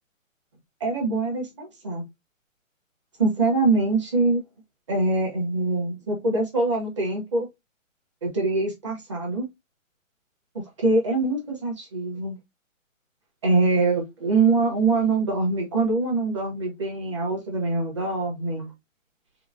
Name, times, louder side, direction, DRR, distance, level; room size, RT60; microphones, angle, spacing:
voice 1, 0.8-2.0 3.2-4.4 4.9-7.5 8.2-9.5 10.8-12.4 13.4-18.7, right 3 dB, 20° right, 0.8 m, -24 dB
3.7 x 2.0 x 2.4 m
hypercardioid pair, 170°, 41 cm